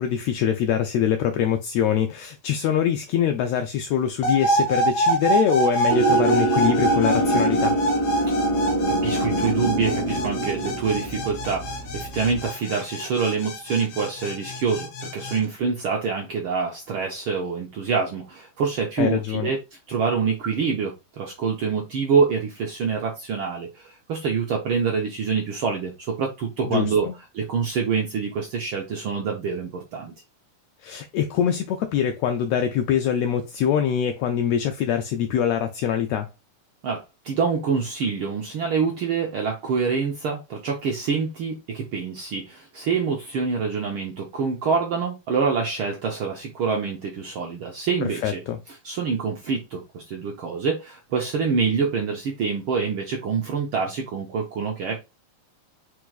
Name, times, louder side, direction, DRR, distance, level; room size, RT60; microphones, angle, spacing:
voice 1, 0.0-7.8 19.0-19.5 26.6-27.1 30.8-36.3 48.2-48.6, left 9 dB, 80° left, 1.5 m, -24 dB
sound 1, 4.2-15.4, right 2 dB, 65° left, 1.9 m, -26 dB
sound 2, 5.9-12.5, right 1 dB, 45° left, 1.1 m, -25 dB
voice 2, 8.9-19.6 19.9-27.1 27.3-30.1 36.8-48.4 48.8-55.0, right 5 dB, 80° right, 1.2 m, -26 dB
4.7 x 4.7 x 2.4 m
omnidirectional pair, 3.5 m